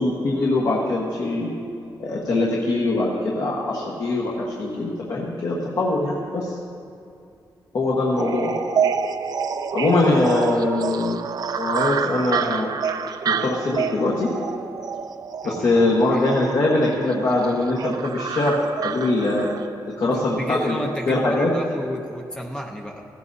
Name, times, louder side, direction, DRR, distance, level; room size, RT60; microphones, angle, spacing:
voice 1, 0.0-1.6 2.0-6.6 7.7-8.5 9.7-11.2 11.6-12.7 13.2-14.3 15.4-18.6 18.8-19.5 20.0-20.8 21.1-21.5, left 2 dB, 50° left, -4 dB, 1.4 m, -22 dB
sound 1, 8.2-19.7, right 6 dB, 55° right, 0.5 m, -28 dB
voice 2, 15.4-15.8 16.1-16.2 20.1-23.0, equal, 10° left, 1 dB, 0.8 m, -31 dB
16.5 x 15.5 x 2.8 m, 2.5 s
wide cardioid pair, 175°, 8 cm